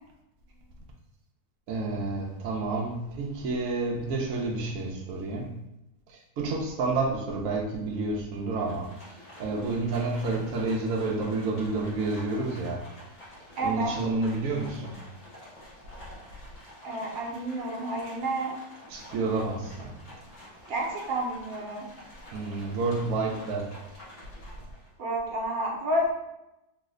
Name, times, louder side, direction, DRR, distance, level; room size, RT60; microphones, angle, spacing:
voice 1, 1.7-5.5 6.4-8.9 9.4-12.8 13.6-14.9 18.9-19.9 22.3-23.7, right 3 dB, 85° right, -1 dB, 0.7 m, -29 dB
Livestock farm animals working animals, 8.6-24.9, left 1 dB, 60° left, 0.5 m, -49 dB
voice 2, 13.6-13.9 16.8-18.6 20.7-21.9 25.0-26.1, right 1 dB, 60° right, -1 dB, 1.0 m, -30 dB
3.1 x 2.1 x 3.5 m, 0.91 s
omnidirectional pair, 2.0 m